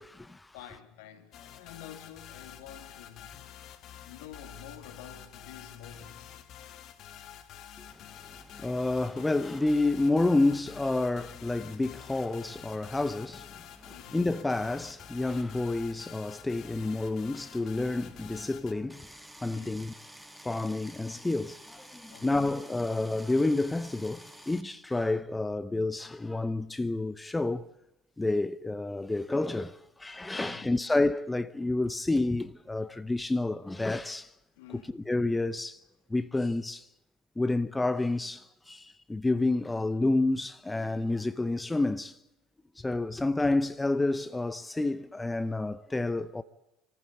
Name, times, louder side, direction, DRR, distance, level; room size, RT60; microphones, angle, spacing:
voice 1, 0.0-0.5 7.9-8.1 8.4-19.1 19.4-19.9 20.4-27.6 28.2-34.3 34.7-35.8 36.1-36.9 37.4-42.2 42.8-46.4, left 2 dB, 10° left, 0.7 m, -29 dB
voice 2, 0.5-3.6 4.1-6.3 13.9-14.3 19.5-19.7 22.1-22.5 30.3-30.7 34.5-35.0, left 10 dB, 65° left, 2.4 m, -49 dB
sound 1, 1.3-18.7, left 9 dB, 50° left, 1.7 m, -48 dB
sound 2, 18.9-24.6, equal, 5° right, 2.3 m, -50 dB
25.5 x 14.5 x 8.6 m
figure-of-eight pair, 65°, 0 cm